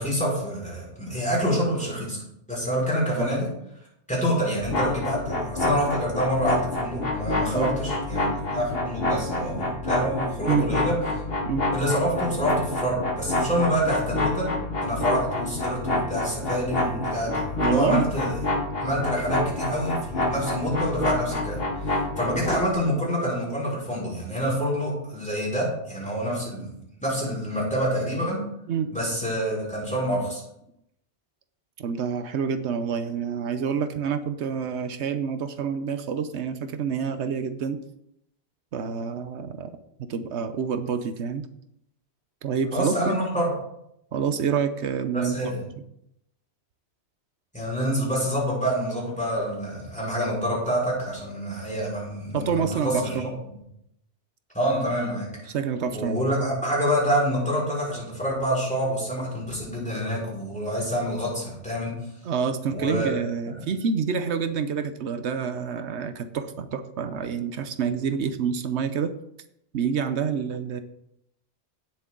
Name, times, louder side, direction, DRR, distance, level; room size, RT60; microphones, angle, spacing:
voice 1, 0.0-2.2 2.5-3.5 4.1-10.9 11.7-14.5 14.8-18.3 18.8-26.7 27.0-28.4 28.9-30.4 42.7-43.5 45.1-45.6 47.5-53.2 54.5-55.3 55.9-61.9 62.7-63.1, equal, 5° left, -5 dB, 5.1 m, -27 dB
sound 1, 4.6-22.7, left 2 dB, 60° left, 1.8 m, -28 dB
voice 2, 17.6-18.1 28.7-29.0 31.8-37.8 38.7-39.7 40.0-41.5 42.4-43.1 44.1-45.3 52.3-53.3 55.5-56.2 62.2-69.1 69.7-70.8, right 6 dB, 80° right, 10 dB, 1.0 m, -27 dB
16.5 x 7.5 x 3.8 m, 0.79 s
omnidirectional pair, 1.1 m